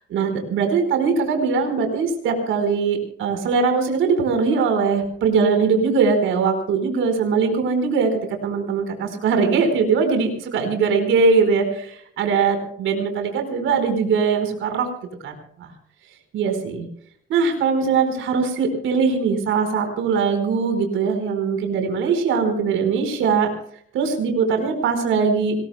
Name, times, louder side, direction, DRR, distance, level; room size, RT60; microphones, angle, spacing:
voice 1, 0.0-14.9 15.2-15.7 16.3-16.9 17.3-23.5 23.9-25.6, right 5 dB, 85° right, 6 dB, 4.7 m, -21 dB
26.5 x 20.5 x 2.2 m, 0.65 s
cardioid pair, 90°, 20 cm